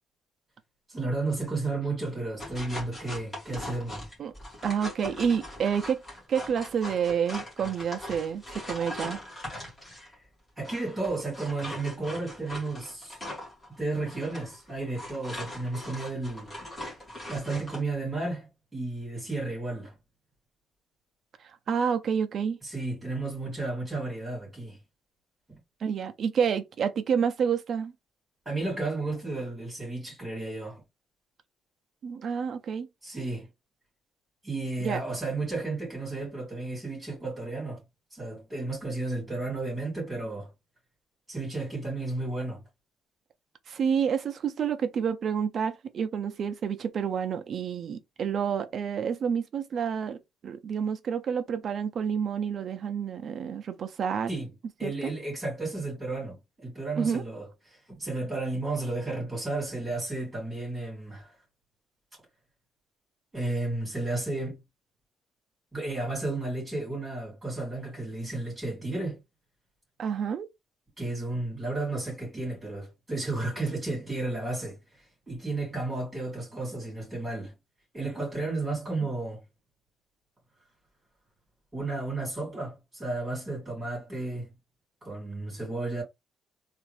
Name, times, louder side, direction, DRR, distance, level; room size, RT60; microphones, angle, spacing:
voice 1, 0.9-4.1 10.0-10.1 10.6-13.2 13.8-16.5 17.3-19.9 22.6-24.8 28.4-30.8 33.0-33.5 34.4-37.8 38.1-40.5 41.3-42.6 54.3-54.5 54.8-57.5 57.9-61.3 63.3-64.6 65.7-69.2 71.0-74.8 75.3-77.5 77.9-79.4 81.7-84.5 85.0-86.0, right 2 dB, 5° right, 2.4 m, -33 dB
sound 1, 2.4-10.1 10.6-17.8, left 1 dB, 15° left, 1.8 m, -40 dB
voice 2, 4.6-6.0 6.3-9.2 21.4-22.6 25.8-27.9 32.0-32.9 34.8-35.0 43.7-50.2 50.4-54.3 54.8-55.1 57.0-57.2 70.0-70.5, right 7 dB, 40° right, 0.5 m, -29 dB
3.5 x 2.5 x 3.2 m
cardioid pair, 175°, 0 cm